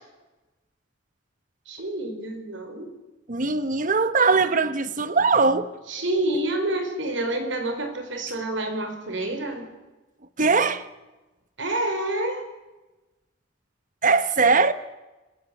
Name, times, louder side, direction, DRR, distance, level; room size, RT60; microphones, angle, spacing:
voice 1, 1.7-2.9 5.9-9.7 11.6-12.5, right 1 dB, 70° right, 4.8 m, -28 dB
voice 2, 3.3-5.7 10.4-10.8 14.0-14.7, right 4 dB, 45° right, 1.1 m, -20 dB
27.5 x 16.0 x 8.5 m
head